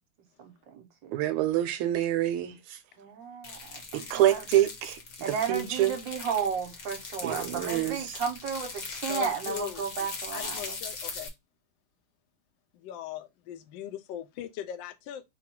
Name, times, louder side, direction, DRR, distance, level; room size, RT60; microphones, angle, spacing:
voice 1, 0.4-1.1 3.0-4.0 4.3-4.4 5.2-10.8, right 7 dB, 65° right, 1.5 m, -33 dB
voice 2, 1.1-2.8 3.9-6.0 7.2-8.2, right 13 dB, 90° right, 1.5 m, -27 dB
sound 1, 3.4-11.3, left 4 dB, 55° left, 1.1 m, -40 dB
voice 3, 9.1-9.8 10.3-11.3 12.7-15.2, left 11 dB, 75° left, 1.2 m, -39 dB
3.8 x 2.3 x 4.4 m
omnidirectional pair, 2.4 m